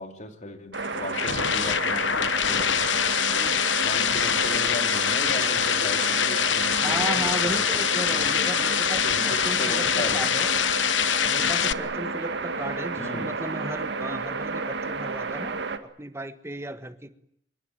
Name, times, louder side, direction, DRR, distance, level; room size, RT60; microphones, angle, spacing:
voice 1, 0.0-2.8 3.3-8.4 9.0-10.3 13.0-13.3, left 2 dB, 40° left, 2.7 m, -37 dB
sound 1, 0.7-11.7, left 9 dB, 75° left, 1.0 m, -24 dB
sound 2, 0.7-15.8, right 3 dB, 65° right, 2.1 m, -31 dB
voice 2, 6.8-10.5 11.3-17.1, right 1 dB, 15° right, 1.5 m, -35 dB
26.0 x 23.0 x 9.1 m
head